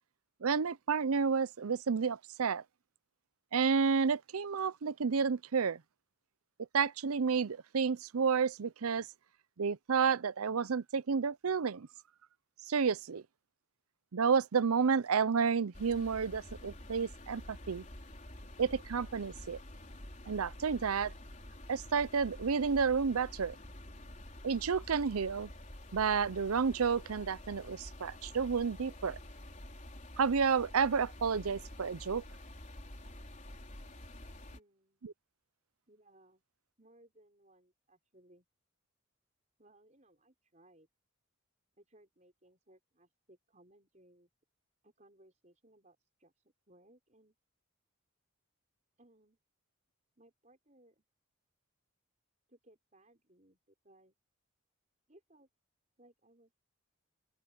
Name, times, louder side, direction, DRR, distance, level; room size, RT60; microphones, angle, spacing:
voice 1, 0.4-2.6 3.5-5.8 6.7-9.1 9.6-11.9 12.7-13.2 14.1-17.8 18.6-19.6 20.3-21.1 21.7-23.6 24.4-25.5 25.9-29.2 30.2-32.2 35.0-35.1, right 5 dB, 80° right, 0.6 m, -31 dB
sound 1, 15.7-34.6, left 1 dB, 35° left, 4.4 m, -49 dB
voice 2, 34.4-35.0 35.9-36.4 36.8-38.5 39.6-40.9 41.7-44.3 44.8-47.4 49.0-49.4 50.2-51.0 52.5-54.2 55.1-55.5 56.0-56.6, right 1 dB, 35° right, 5.4 m, -64 dB
open air
head